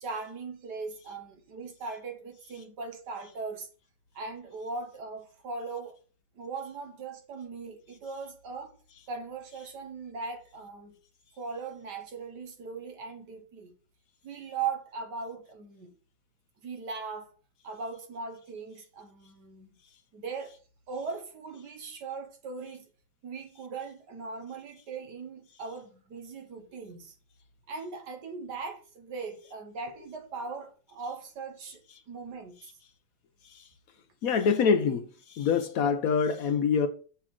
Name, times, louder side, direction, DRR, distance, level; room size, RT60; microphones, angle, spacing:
voice 1, 0.0-3.7 4.1-6.0 6.4-8.8 9.1-11.0 11.4-13.7 14.2-16.0 16.6-17.3 17.6-19.7 20.1-20.6 20.9-22.9 23.2-27.1 27.7-32.7, right 4 dB, 65° right, 1.7 m, -39 dB
voice 2, 34.2-35.1 35.3-36.9, left 6 dB, 70° left, 0.8 m, -25 dB
7.2 x 3.7 x 5.9 m
omnidirectional pair, 2.0 m